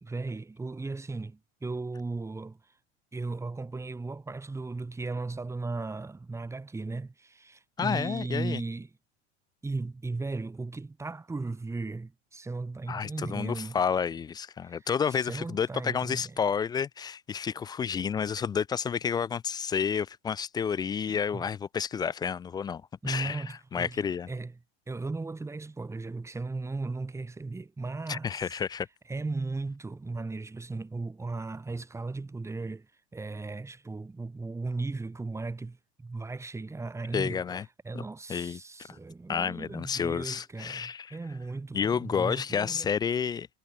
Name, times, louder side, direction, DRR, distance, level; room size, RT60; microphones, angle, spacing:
voice 1, 0.0-2.6 3.1-8.9 9.6-13.8 14.6-14.9 15.2-16.4 21.3-21.5 23.0-24.5 24.9-28.4 29.1-37.4 37.8-42.9, right 3 dB, 10° right, 2.2 m, -36 dB
voice 2, 7.8-8.6 12.9-24.3 28.1-28.9 37.1-37.6 37.9-38.0 38.3-38.6 38.9-39.0 39.3-41.2 41.7-43.5, left 7 dB, 10° left, 0.5 m, -30 dB
figure-of-eight pair, 85°, 34 cm